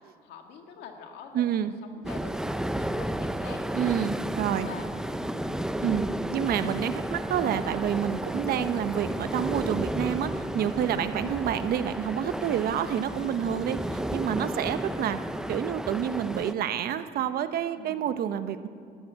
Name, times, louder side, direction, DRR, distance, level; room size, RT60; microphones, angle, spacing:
voice 1, 0.2-1.5 1.8-3.6 4.6-4.9 17.8-18.1, left 6 dB, 85° left, 4 dB, 1.9 m, -45 dB
voice 2, 1.3-1.7 3.7-4.7 5.8-6.1 6.3-15.2 15.5-18.7, right 9 dB, 65° right, 11 dB, 0.8 m, -28 dB
sound 1, 2.0-16.5, right 1 dB, 5° right, 0.5 m, -32 dB
Subway metro underground, 4.5-15.8, left 1 dB, 35° left, 2.4 m, -48 dB
12.5 x 12.5 x 8.6 m, 2.2 s
cardioid pair, 110°, 17 cm